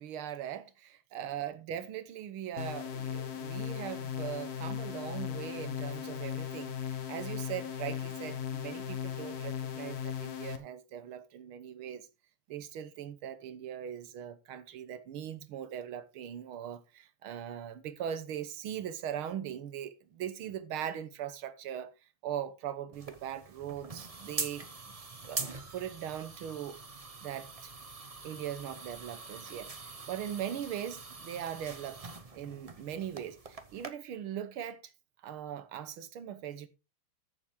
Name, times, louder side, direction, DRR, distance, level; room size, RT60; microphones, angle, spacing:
voice 1, 0.0-12.1 12.5-21.9 22.2-24.7 25.3-25.5 25.7-26.8 27.2-27.7 28.2-32.0 32.3-34.9 35.2-36.7, right 9 dB, 75° right, 1.9 m, -40 dB
sound 1, 2.6-10.6, left 9 dB, 50° left, 1.6 m, -37 dB
sound 2, 22.9-33.9, right 4 dB, 40° right, 0.4 m, -43 dB
14.5 x 7.1 x 3.7 m
omnidirectional pair, 2.4 m